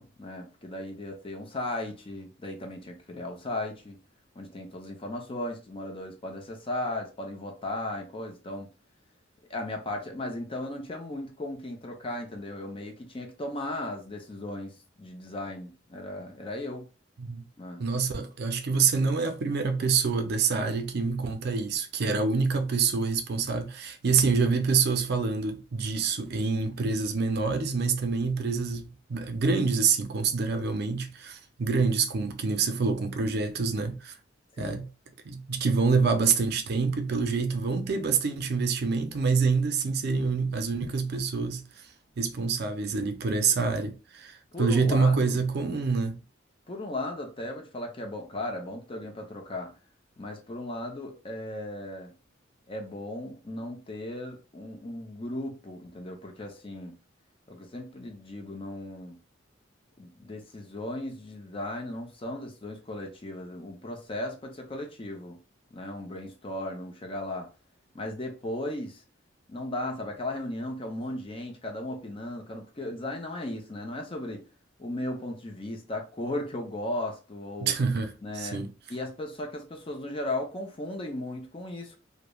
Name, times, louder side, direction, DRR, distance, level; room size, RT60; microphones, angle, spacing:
voice 1, 0.0-4.0 4.4-8.7 9.5-16.9 17.6-17.8 34.6-34.8 44.5-45.4 46.7-49.7 50.2-52.1 52.7-57.0 57.5-59.2 60.0-65.4 65.7-67.5 67.9-69.0 69.5-74.5 74.8-77.7 78.2-78.6 78.9-82.0, left 1 dB, 30° left, 0.6 m, -36 dB
voice 2, 17.8-34.1 34.6-34.8 35.3-41.6 42.2-46.2 77.6-78.7, right 4 dB, 55° right, 0.5 m, -26 dB
3.1 x 2.1 x 2.3 m
head